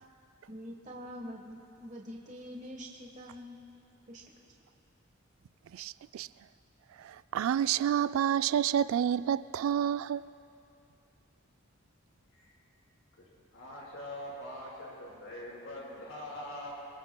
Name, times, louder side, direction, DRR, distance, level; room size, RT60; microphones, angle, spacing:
voice 1, 0.5-3.6 4.1-4.2, equal, 35° right, 1.2 m, -45 dB
voice 2, 5.7-6.3 7.0-10.3, right 9 dB, 80° right, 0.3 m, -29 dB
voice 3, 13.5-16.9, left 1 dB, 75° left, 4.8 m, -43 dB
28.0 x 22.5 x 2.2 m
head